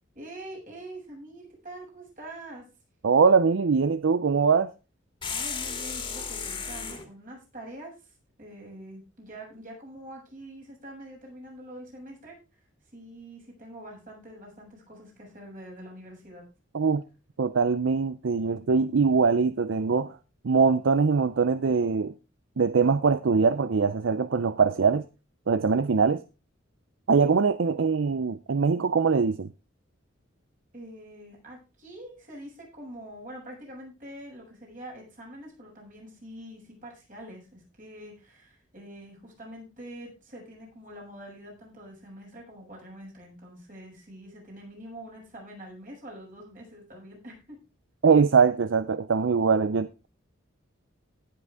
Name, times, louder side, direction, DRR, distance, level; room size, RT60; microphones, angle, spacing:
voice 1, 0.1-2.6 5.3-8.1 8.4-12.4 12.9-16.4 30.7-47.6, right 1 dB, 45° right, 7.4 m, -45 dB
voice 2, 3.0-4.7 16.7-17.0 17.4-20.2 20.4-22.1 22.6-25.0 25.5-26.2 27.1-29.5 48.0-50.1, right 5 dB, 75° right, 0.5 m, -22 dB
sound 1, 5.2-7.1, left 5 dB, 25° left, 2.2 m, -34 dB
18.0 x 7.6 x 3.5 m
head